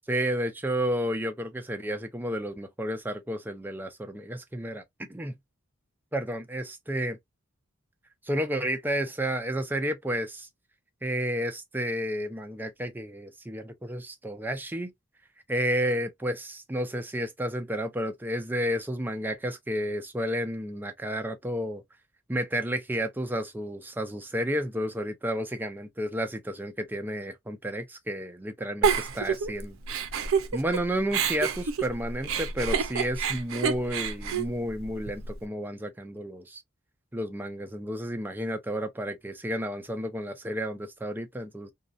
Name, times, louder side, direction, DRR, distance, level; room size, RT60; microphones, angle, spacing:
voice 1, 0.1-4.8 5.1-5.4 6.1-7.2 8.2-10.5 11.0-14.9 15.5-21.8 22.3-29.8 30.5-36.6 37.1-41.7, equal, 10° right, 0.5 m, -31 dB
Giggle, 28.8-30.8 31.1-35.3, right 6 dB, 80° right, 0.5 m, -28 dB
2.7 x 2.0 x 2.4 m
head